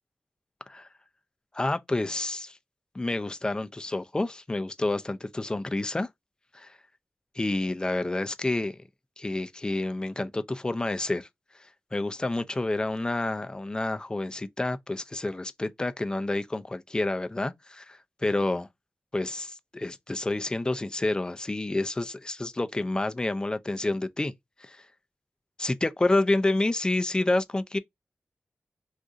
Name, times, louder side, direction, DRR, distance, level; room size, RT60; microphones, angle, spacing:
voice 1, 1.5-2.6 2.9-6.1 6.5-6.8 7.4-8.8 9.2-11.3 11.9-18.7 19.1-24.3 24.6-24.8 25.6-27.8, left 2 dB, 20° left, 0.4 m, -29 dB
2.5 x 2.4 x 3.7 m
wide cardioid pair, 125°, 5 cm